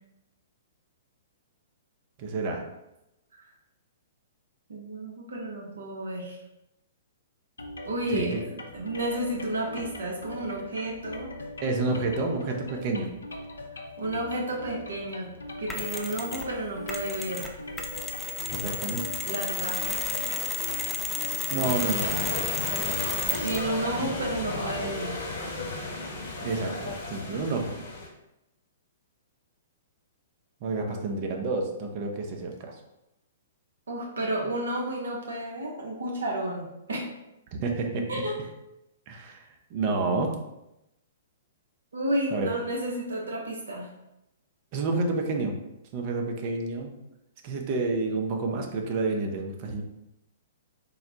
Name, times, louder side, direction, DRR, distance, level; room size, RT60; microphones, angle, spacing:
voice 1, 2.2-2.6 8.1-8.3 11.6-13.1 18.5-19.1 21.5-22.3 24.0-24.1 26.4-27.7 30.6-32.8 37.6-38.1 39.1-39.4 39.7-40.4 42.3-42.5 44.7-45.5 45.9-46.9 47.4-49.8, right 3 dB, 40° right, 3 dB, 0.5 m, -29 dB
voice 2, 4.7-6.4 7.8-8.4 8.7-11.3 14.0-15.3 15.6-17.6 19.2-20.0 23.4-25.2 30.8-31.0 33.9-37.0 38.1-38.4 41.9-43.9, right 1 dB, 70° right, -1 dB, 0.8 m, -32 dB
sound 1, 7.6-25.0, left 1 dB, 75° left, 0.5 m, -41 dB
Mechanisms, 15.7-16.5 16.9-23.7, left 4 dB, 5° left, 0.3 m, -32 dB
sound 2, 21.6-28.1, left 2 dB, 55° left, 1.0 m, -34 dB
3.9 x 2.1 x 2.8 m, 0.90 s
figure-of-eight pair, 115°, 0 cm